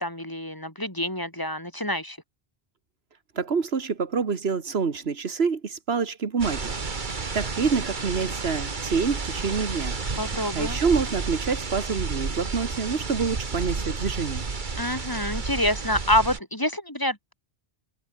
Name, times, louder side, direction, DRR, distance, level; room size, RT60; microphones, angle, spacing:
voice 1, 0.0-2.2 10.2-10.8 14.8-17.3, left 1 dB, 20° left, 3.1 m, -27 dB
voice 2, 3.4-6.7 7.3-10.0 10.5-14.5, right 5 dB, 80° right, 1.7 m, -27 dB
sound 1, 6.4-16.4, right 4 dB, 50° right, 1.7 m, -31 dB
omnidirectional pair, 1.1 m